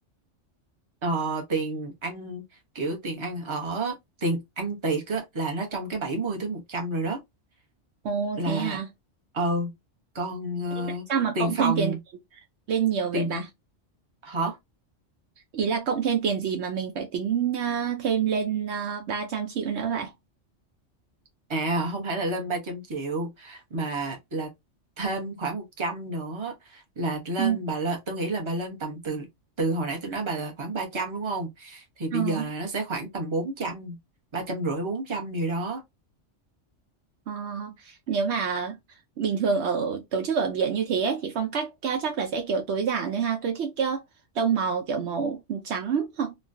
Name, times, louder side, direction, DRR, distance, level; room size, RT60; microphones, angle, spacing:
voice 1, 1.0-2.4 2.7-7.2 8.4-8.8 9.3-9.7 10.1-11.1 11.3-12.0 13.1-13.4 14.2-14.6 21.5-24.5 25.0-29.3 29.6-34.0 34.3-35.8, right 2 dB, 25° right, 0.9 m, -30 dB
voice 2, 8.0-8.9 10.8-11.9 12.7-13.4 15.5-20.1 27.4-27.6 32.1-32.5 37.3-38.8 39.2-44.0 44.3-46.4, right 6 dB, 70° right, 0.8 m, -27 dB
3.2 x 2.2 x 2.5 m
omnidirectional pair, 1.3 m